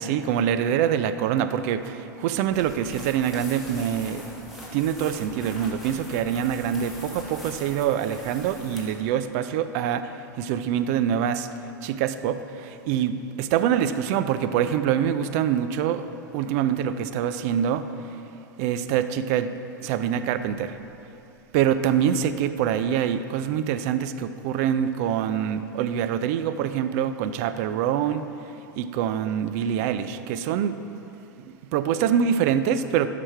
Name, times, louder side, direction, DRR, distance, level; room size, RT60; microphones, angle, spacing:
voice 1, 0.0-4.2 4.7-11.5 11.8-18.2 18.6-19.5 19.8-20.8 21.5-28.2 28.8-30.8 31.4-33.1, right 9 dB, 50° right, 12 dB, 0.5 m, -25 dB
sound 1, 2.4-9.0, left 1 dB, ahead, 2.0 m, -42 dB
12.0 x 5.9 x 4.5 m, 2.8 s
figure-of-eight pair, 90°, 11 cm